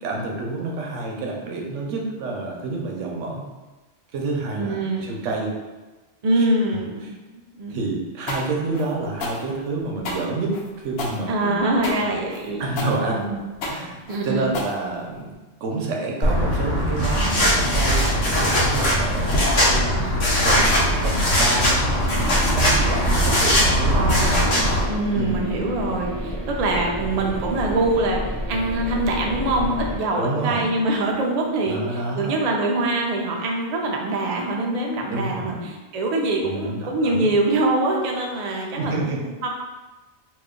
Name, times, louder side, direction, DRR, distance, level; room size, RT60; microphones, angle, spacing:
voice 1, 0.0-3.5 4.1-5.5 7.7-11.7 12.6-13.3 13.6-15.3 15.6-19.3 19.7-20.1 20.4-20.6 21.0-24.3 25.1-25.4 30.2-30.8 31.7-32.4 35.1-35.7 36.4-37.3 38.8-39.2, right 3 dB, 85° right, 0 dB, 1.0 m, -28 dB
voice 2, 4.5-5.1 6.2-7.2 7.6-7.8 11.3-12.6 13.1-13.4 14.1-14.5 23.9-39.1 39.4-39.5, right 2 dB, 60° right, 0 dB, 0.4 m, -24 dB
sound 1, 8.3-15.3, left 2 dB, 65° left, 0.7 m, -31 dB
sound 2, 16.2-24.8, equal, 80° left, 1.2 m, -20 dB
sound 3, 22.1-30.0, equal, 15° right, 1.1 m, -30 dB
2.9 x 2.3 x 3.6 m, 1.2 s
omnidirectional pair, 1.3 m